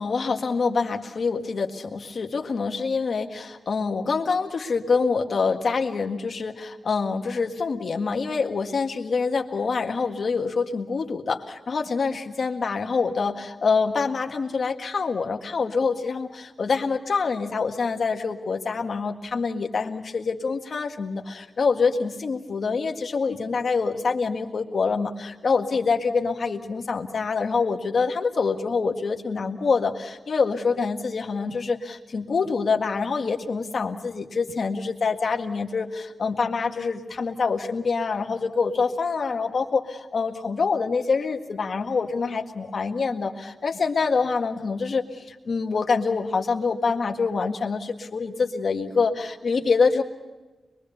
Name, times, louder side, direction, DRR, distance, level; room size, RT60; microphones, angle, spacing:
voice 1, 0.0-50.0, left 4 dB, 60° left, 3 dB, 1.8 m, -26 dB
24.0 x 22.5 x 7.0 m, 1.2 s
wide cardioid pair, 150°, 0 cm